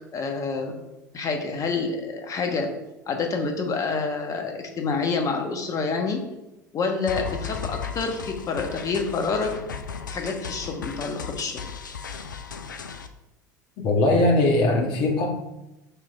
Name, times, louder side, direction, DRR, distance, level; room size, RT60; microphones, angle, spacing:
voice 1, 0.1-0.8 1.1-2.7 3.1-6.2 6.7-9.5 10.1-11.6, left 4 dB, 35° left, 4 dB, 1.2 m, -27 dB
sound 1, 7.1-13.1, left 6 dB, 80° left, 0.5 m, -36 dB
voice 2, 13.8-15.3, left 2 dB, 50° left, 0 dB, 1.5 m, -20 dB
6.7 x 3.1 x 5.1 m, 0.94 s
figure-of-eight pair, 75°, 10 cm